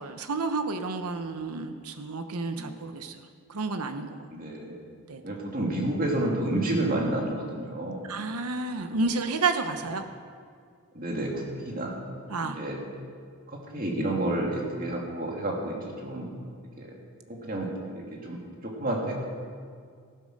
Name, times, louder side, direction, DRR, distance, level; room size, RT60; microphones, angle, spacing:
voice 1, 0.0-3.1 3.5-4.2 5.1-5.2 8.1-10.0 12.3-12.6, right 3 dB, 85° right, 7 dB, 0.9 m, -30 dB
voice 2, 4.3-4.8 5.2-8.0 10.9-11.9 12.4-12.8 13.5-16.3 16.8-16.9 17.3-17.7 17.9-19.2, right 1 dB, 40° right, -1 dB, 2.6 m, -30 dB
15.5 x 10.5 x 6.5 m, 2.1 s
head